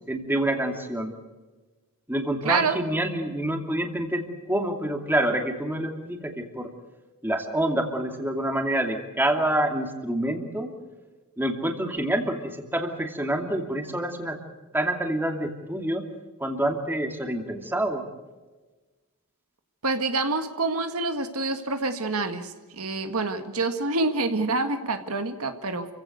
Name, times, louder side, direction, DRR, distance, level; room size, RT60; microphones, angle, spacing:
voice 1, 0.1-1.1 2.1-6.7 7.2-10.7 11.4-14.4 14.7-16.0 16.4-18.0, right 1 dB, 10° right, 4 dB, 2.6 m, -27 dB
voice 2, 2.4-2.8 19.8-25.9, right 3 dB, 75° right, 7 dB, 1.8 m, -27 dB
28.5 x 16.5 x 8.1 m, 1.3 s
head